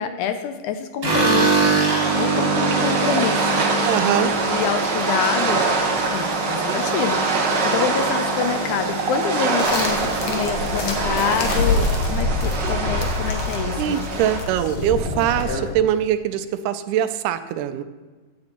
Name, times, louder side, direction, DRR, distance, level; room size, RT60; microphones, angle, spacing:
voice 1, 0.0-5.6 6.1-14.2, left 8 dB, 80° left, 8 dB, 1.9 m, -27 dB
sound 1, 1.0-13.3 13.6-14.2 14.5-14.6 14.9-15.6, right 3 dB, 35° right, 2.6 m, -25 dB
sound 2, 1.9-14.4, right 4 dB, 65° right, 1.0 m, -25 dB
voice 2, 3.8-4.3 13.8-17.8, right 11 dB, 80° right, 10 dB, 2.1 m, -22 dB
sound 3, 9.6-15.7, left 3 dB, 60° left, 1.8 m, -26 dB
15.5 x 8.7 x 2.9 m, 1.4 s
omnidirectional pair, 3.8 m